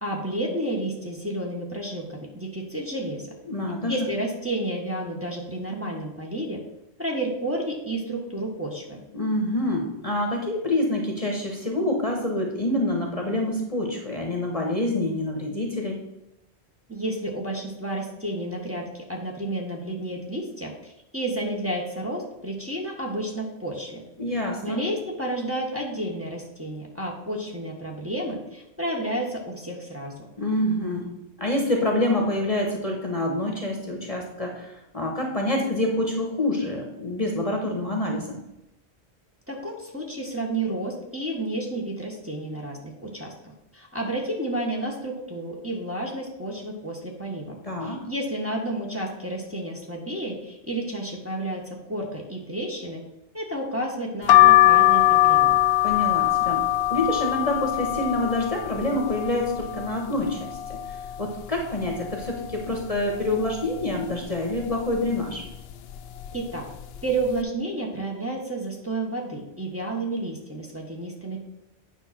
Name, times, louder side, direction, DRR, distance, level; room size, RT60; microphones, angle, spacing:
voice 1, 0.0-3.3 3.9-6.6 7.0-9.0 16.9-24.0 24.3-30.1 39.5-43.3 43.7-53.0 53.3-55.6 66.3-66.7 67.0-71.4, right 1 dB, 15° right, -2 dB, 1.6 m, -31 dB
voice 2, 3.5-4.1 9.1-16.0 24.2-24.8 30.4-31.1 31.4-38.4 47.6-48.0 55.8-65.4, left 1 dB, 35° left, 1 dB, 1.3 m, -27 dB
sound 1, 54.3-60.0 60.4-61.2 61.6-61.7 61.8-63.0 63.5-63.8 64.6-64.9 65.7-65.9 66.2-66.4, left 15 dB, 70° left, 0.8 m, -21 dB
9.2 x 5.8 x 4.3 m, 0.90 s
omnidirectional pair, 1.1 m